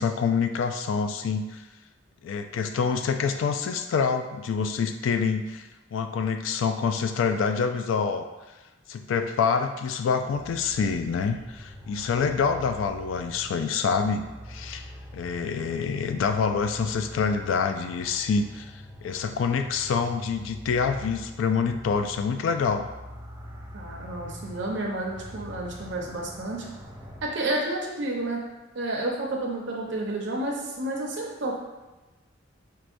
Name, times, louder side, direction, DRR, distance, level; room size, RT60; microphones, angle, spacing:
voice 1, 0.0-1.6 2.2-8.3 8.9-14.9 15.1-18.7 19.0-22.9, left 5 dB, 75° left, 8 dB, 0.3 m, -26 dB
sound 1, 10.3-27.3, equal, 15° right, 0.4 m, -44 dB
voice 2, 23.7-26.7 27.2-28.4 28.7-31.6, right 2 dB, 65° right, -1 dB, 0.7 m, -30 dB
4.6 x 2.2 x 2.5 m, 1.1 s
head